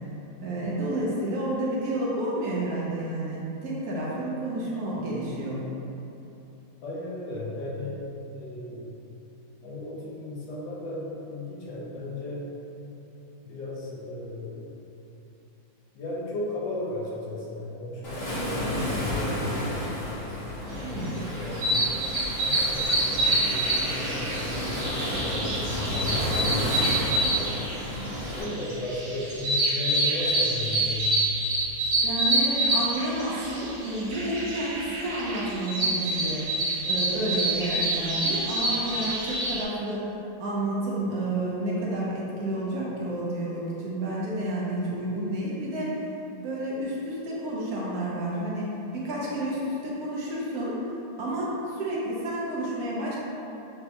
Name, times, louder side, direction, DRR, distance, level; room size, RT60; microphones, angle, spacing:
voice 1, 0.4-5.6 20.8-21.1 32.0-36.4 36.8-40.0 40.4-46.0 46.4-50.8 51.2-53.2, right 1 dB, 60° right, -6 dB, 1.1 m, -30 dB
voice 2, 6.8-8.0 8.3-8.9 9.6-12.4 13.4-14.7 15.9-19.7 20.7-21.9 22.4-27.7 28.3-31.1, left 2 dB, 75° left, -6 dB, 1.5 m, -35 dB
Waves surf, 18.0-28.4, left 1 dB, 45° left, 0.8 m, -31 dB
sound 1, 21.0-39.6, right 1 dB, 80° right, 1.5 m, -27 dB
6.3 x 2.2 x 2.9 m, 2.9 s
omnidirectional pair, 2.0 m